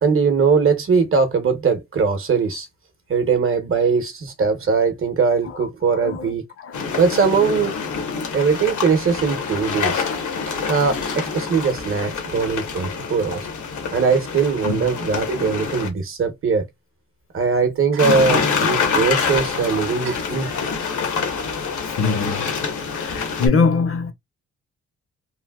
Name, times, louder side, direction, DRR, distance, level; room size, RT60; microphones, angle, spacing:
voice 1, 0.0-2.7 3.1-6.4 7.0-7.7 8.3-10.0 10.7-13.5 13.9-16.7 17.3-20.5, right 5 dB, 45° right, 0.8 m, -20 dB
voice 2, 6.0-6.3 6.6-6.7 14.7-14.9 22.0-22.5 22.9-24.1, left 5 dB, 50° left, 0.6 m, -22 dB
sound 1, 6.7-15.9 18.0-23.5, left 5 dB, 80° left, 1.1 m, -26 dB
3.2 x 2.6 x 2.3 m
wide cardioid pair, 135°, 29 cm